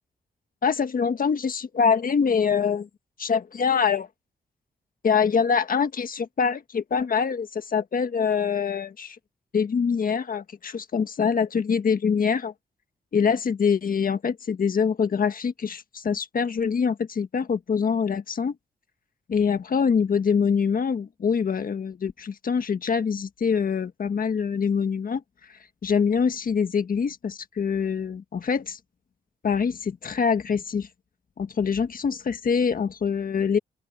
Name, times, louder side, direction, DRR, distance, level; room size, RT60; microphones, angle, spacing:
voice 1, 0.6-2.9 3.2-4.1 5.0-9.2 9.5-12.5 13.1-18.5 19.3-25.2 25.5-28.8 29.4-30.9 31.4-33.6, left 6 dB, 55° left, 1.5 m, -24 dB
open air
cardioid pair, 70°, 17 cm